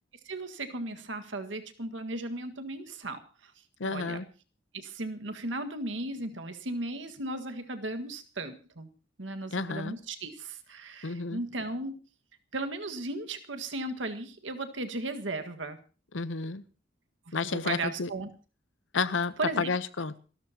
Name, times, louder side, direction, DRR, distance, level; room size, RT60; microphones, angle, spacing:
voice 1, 0.3-3.5 3.8-4.2 4.7-8.9 9.2-12.0 12.5-15.8 17.3-18.3 19.4-19.7, right 2 dB, 80° right, 6 dB, 1.7 m, -36 dB
voice 2, 3.8-4.3 9.5-10.0 11.0-11.4 16.1-16.6 17.3-18.1 18.9-20.2, left 4 dB, 85° left, 14 dB, 0.9 m, -31 dB
27.5 x 13.0 x 2.9 m, 0.36 s
head